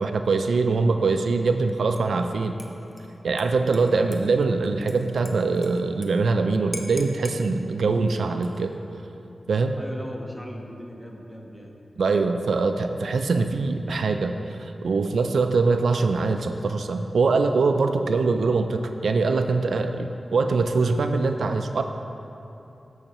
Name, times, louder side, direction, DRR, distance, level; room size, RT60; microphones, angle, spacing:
voice 1, 0.0-2.5 3.2-8.7 9.5-9.8 12.0-21.8, right 4 dB, 85° right, 6 dB, 0.4 m, -23 dB
Dishes pots and pans / Liquid, 2.0-2.3 2.6-6.1 6.4-6.5 6.7-7.4 8.3-8.8, left 1 dB, 25° left, 0.8 m, -43 dB
voice 2, 3.5-3.9 9.8-11.7, equal, 5° left, -1 dB, 1.1 m, -39 dB
13.5 x 6.4 x 3.0 m, 2.9 s
wide cardioid pair, 80°, 0 cm